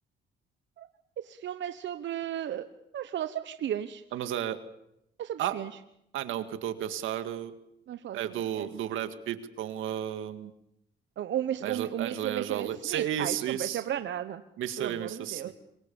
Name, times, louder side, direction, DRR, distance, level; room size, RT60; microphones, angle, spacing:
voice 1, 1.2-2.7 2.9-4.0 5.2-5.7 7.9-8.7 11.2-14.4 14.8-15.5, right 11 dB, 65° right, 10 dB, 1.1 m, -34 dB
voice 2, 4.1-4.6 5.4-5.6 6.1-7.5 8.1-10.5 11.6-13.8 14.6-15.5, right 10 dB, 85° right, 10 dB, 2.0 m, -33 dB
27.0 x 23.0 x 7.1 m, 0.78 s
cardioid pair, 90°, 20 cm